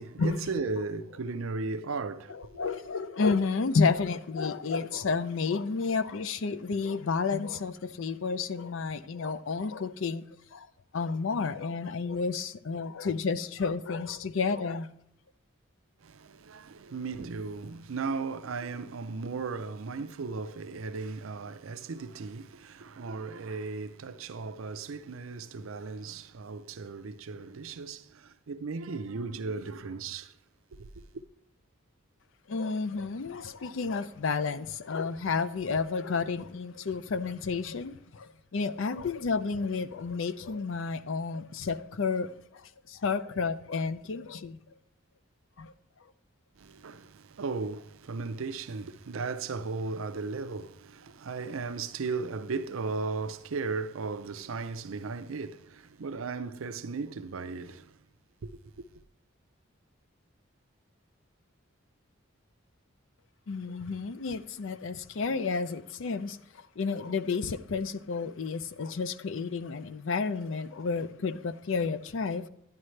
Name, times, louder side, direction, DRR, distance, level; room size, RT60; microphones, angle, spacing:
voice 1, 0.0-2.3 16.0-30.3 30.8-30.9 46.6-58.0 58.4-58.5, right 4 dB, 75° right, 0.5 m, -36 dB
voice 2, 2.3-10.3 10.5-10.7 10.9-14.9 32.5-44.6 45.6-45.7 63.5-72.5, left 4 dB, 65° left, 0.5 m, -31 dB
11.5 x 9.9 x 3.2 m
head